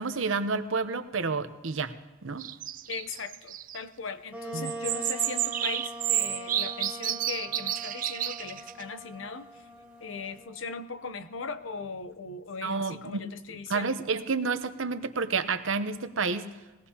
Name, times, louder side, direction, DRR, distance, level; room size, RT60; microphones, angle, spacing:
voice 1, 0.0-1.9 2.2-2.4 4.5-4.7 12.6-13.3 13.7-16.5, right 4 dB, 80° right, 10 dB, 0.9 m, -30 dB
sound 1, 2.4-3.8 4.6-8.8, right 12 dB, 45° right, 0.4 m, -31 dB
voice 2, 2.9-9.5 10.0-14.0, left 4 dB, 75° left, 11 dB, 0.8 m, -39 dB
Wind instrument woodwind instrument, 4.3-11.7, right 1 dB, 5° right, 1.0 m, -43 dB
21.5 x 17.5 x 2.9 m, 1.2 s
head